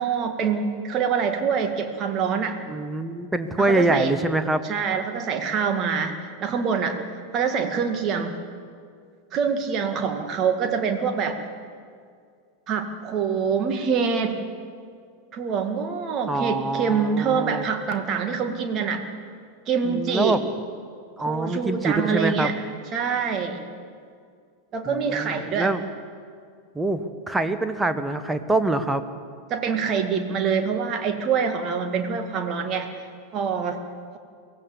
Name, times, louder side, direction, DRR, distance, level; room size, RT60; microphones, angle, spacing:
voice 1, 0.0-2.6 3.6-4.2 4.6-7.0 7.3-8.3 9.3-11.4 12.7-14.4 15.3-19.1 19.7-20.4 21.3-22.6 22.9-23.6 24.7-25.7 29.5-32.9 33.3-33.8, right 6 dB, 30° right, 5 dB, 2.1 m, -25 dB
voice 2, 2.7-4.6 16.3-17.7 19.8-20.4 21.2-22.5 24.8-25.8 26.7-29.0, right 2 dB, 5° right, 9 dB, 1.3 m, -25 dB
23.5 x 16.5 x 7.2 m, 2.2 s
figure-of-eight pair, 90°, 0 cm